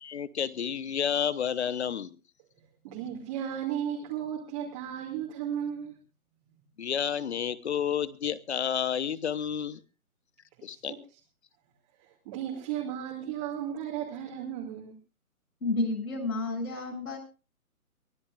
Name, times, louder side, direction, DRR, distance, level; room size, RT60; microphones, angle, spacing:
voice 1, 0.0-2.2 6.8-9.8 10.6-10.9, left 8 dB, 50° left, 16 dB, 1.1 m, -30 dB
voice 2, 2.8-6.0 10.7-11.0 12.3-14.9, right 9 dB, 25° right, -1 dB, 2.4 m, -35 dB
voice 3, 15.6-17.2, left 2 dB, 75° left, 1 dB, 7.8 m, -30 dB
23.0 x 16.0 x 2.5 m, 0.32 s
hypercardioid pair, 155°, 43 cm